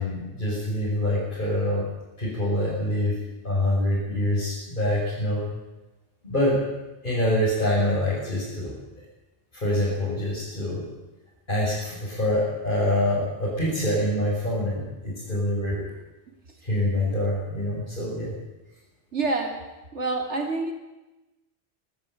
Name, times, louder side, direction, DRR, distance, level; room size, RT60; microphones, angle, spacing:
voice 1, 0.0-1.9 2.2-3.2 3.4-5.5 6.2-6.6 7.0-8.7 9.5-10.8 11.5-15.9 16.6-18.3, left 1 dB, 45° left, -8 dB, 6.7 m, -25 dB
voice 2, 19.1-19.6 19.9-20.7, right 3 dB, 90° right, 4 dB, 3.1 m, -27 dB
22.0 x 13.5 x 9.3 m, 1.1 s
omnidirectional pair, 1.2 m